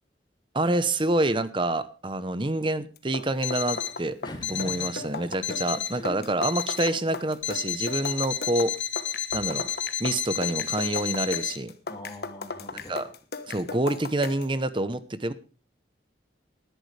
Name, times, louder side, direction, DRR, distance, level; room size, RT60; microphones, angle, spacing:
voice 1, 0.5-4.2 4.5-8.7 9.3-9.7 10.0-11.7 12.9-13.0 13.5-15.3, right 2 dB, 25° right, 13 dB, 0.9 m, -27 dB
sound 1, 3.0-14.5, left 3 dB, 55° left, 1.2 m, -37 dB
Alarm, 3.4-4.0 4.4-5.0 5.4-6.0 6.4-7.0 7.4-11.6, left 9 dB, 75° left, 1.5 m, -31 dB
voice 2, 4.2-5.1 5.9-6.4 11.9-13.1, left 1 dB, 25° left, 3 dB, 2.6 m, -42 dB
19.5 x 11.0 x 3.3 m, 0.36 s
head